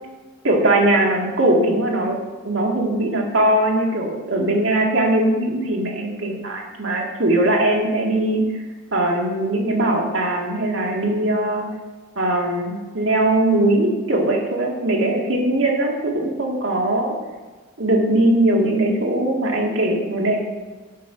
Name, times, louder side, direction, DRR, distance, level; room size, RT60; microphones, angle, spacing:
voice 1, 0.4-2.2 2.4-8.6 8.9-11.7 12.2-17.1 17.8-20.4, right 1 dB, 65° right, 0 dB, 1.9 m, -20 dB
8.5 x 6.2 x 6.0 m, 1.3 s
head